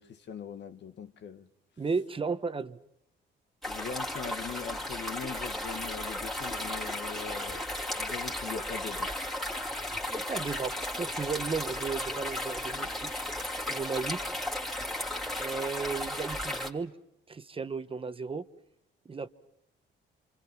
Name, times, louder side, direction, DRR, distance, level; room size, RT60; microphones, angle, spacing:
voice 1, 0.0-1.5 3.7-7.6 8.0-9.1 12.7-12.9, left 6 dB, 60° left, 1.3 m, -41 dB
voice 2, 1.8-2.8 10.1-13.1 13.7-14.2 15.4-16.9 17.3-18.4 19.0-19.3, right 5 dB, 25° right, 1.0 m, -34 dB
sound 1, 3.6-16.7, left 1 dB, ahead, 2.7 m, -35 dB
28.0 x 26.0 x 6.0 m
cardioid pair, 90°, 20 cm